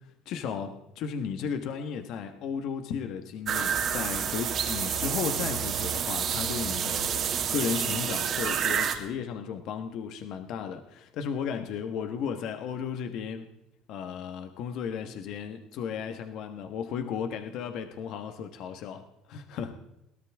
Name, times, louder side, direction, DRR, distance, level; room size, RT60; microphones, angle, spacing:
voice 1, 0.2-13.5 13.9-19.7, left 7 dB, 60° left, 8 dB, 1.4 m, -35 dB
sound 1, 3.5-9.0, right 8 dB, 45° right, 2.4 m, -29 dB
22.0 x 17.5 x 3.6 m, 0.88 s
cardioid pair, 120°, 0 cm